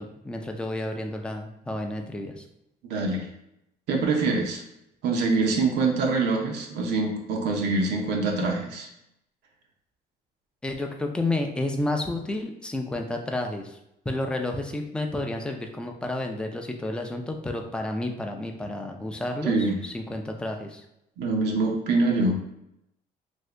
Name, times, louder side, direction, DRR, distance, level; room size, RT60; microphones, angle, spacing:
voice 1, 0.0-2.4 10.6-13.8 14.1-20.8, left 2 dB, 5° left, 3 dB, 0.4 m, -31 dB
voice 2, 2.8-3.3 3.9-4.6 5.0-8.9 19.4-19.8 21.2-22.4, right 3 dB, 80° right, 1 dB, 0.7 m, -24 dB
2.7 x 2.6 x 3.3 m, 0.82 s
cardioid pair, 110°, 17 cm